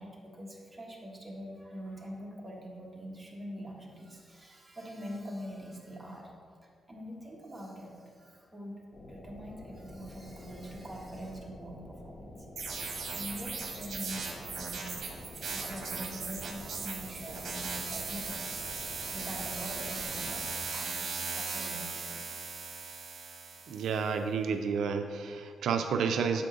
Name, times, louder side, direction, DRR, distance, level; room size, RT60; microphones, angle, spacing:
voice 1, 0.0-6.3 6.9-8.8 9.1-12.5 13.1-15.1 15.4-22.4, equal, 15° right, -2 dB, 1.3 m, -44 dB
sound 1, 8.9-20.6, left 1 dB, 40° left, 0.7 m, -48 dB
sound 2, 12.6-24.0, right 4 dB, 60° right, 0.9 m, -38 dB
voice 2, 23.7-26.5, right 6 dB, 85° right, 6 dB, 0.3 m, -30 dB
7.3 x 4.8 x 3.8 m, 2.2 s
cardioid pair, 115°, 0 cm